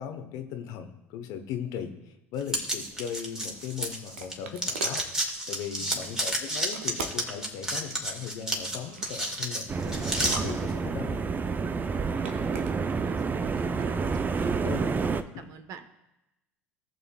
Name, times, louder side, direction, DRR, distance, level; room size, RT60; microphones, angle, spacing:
voice 1, 0.0-11.2 14.6-14.9, left 8 dB, 55° left, 7 dB, 1.1 m, -38 dB
sound 1, 2.5-4.3 4.6-10.4, right 1 dB, 10° right, 2.1 m, -31 dB
sound 2, 3.4-5.1 6.6-7.4 8.7-9.2 10.1-11.1 12.0-12.7, right 5 dB, 75° right, 0.9 m, -40 dB
voice 2, 5.8-6.4 12.2-12.4 12.7-14.5 15.0-15.8, right 7 dB, 50° right, 9 dB, 0.9 m, -46 dB
sound 3, 9.7-15.2, right 5 dB, 25° right, 0.6 m, -29 dB
17.5 x 6.8 x 2.4 m, 0.92 s
figure-of-eight pair, 70°, 7 cm